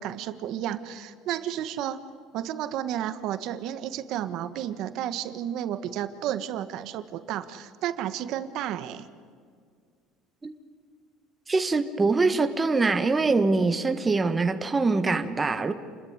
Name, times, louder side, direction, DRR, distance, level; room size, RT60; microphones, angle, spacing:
voice 1, 0.0-2.0 2.3-9.1, right 11 dB, 60° right, 11 dB, 1.5 m, -32 dB
voice 2, 11.5-15.7, right 3 dB, 15° right, 8 dB, 1.4 m, -24 dB
29.0 x 21.0 x 9.7 m, 2.1 s
cardioid pair, 145°, 0 cm